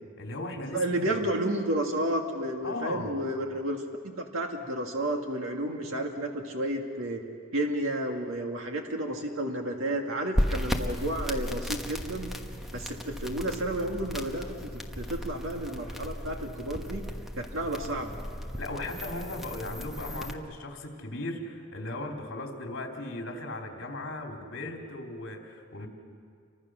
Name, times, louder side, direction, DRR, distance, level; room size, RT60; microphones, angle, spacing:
voice 1, 0.2-1.1 2.6-3.2 18.6-25.9, left 2 dB, 60° left, 1 dB, 3.5 m, -37 dB
voice 2, 0.7-3.8 4.2-7.2 7.5-12.3 12.7-14.7 15.0-17.1 17.4-18.2, right 1 dB, 65° right, 2 dB, 2.0 m, -31 dB
sound 1, 10.3-20.3, equal, ahead, 1.2 m, -35 dB
30.0 x 24.5 x 6.3 m, 2.2 s
head